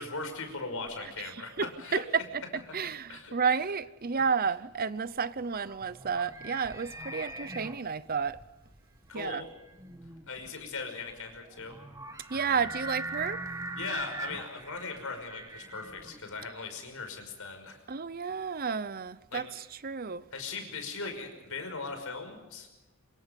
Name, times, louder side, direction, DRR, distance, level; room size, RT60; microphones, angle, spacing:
voice 1, 0.0-2.0 3.1-3.3 9.1-9.5 10.3-11.8 13.8-17.8 19.3-19.5 20.3-22.7, left 4 dB, 70° left, 5.7 m, -39 dB
voice 2, 1.2-2.4 2.7-8.4 9.1-9.4 12.3-13.4 17.9-20.3, right 5 dB, 40° right, 0.7 m, -31 dB
sound 1, 5.0-16.5, right 2 dB, 15° right, 1.6 m, -42 dB
26.5 x 23.5 x 5.3 m
head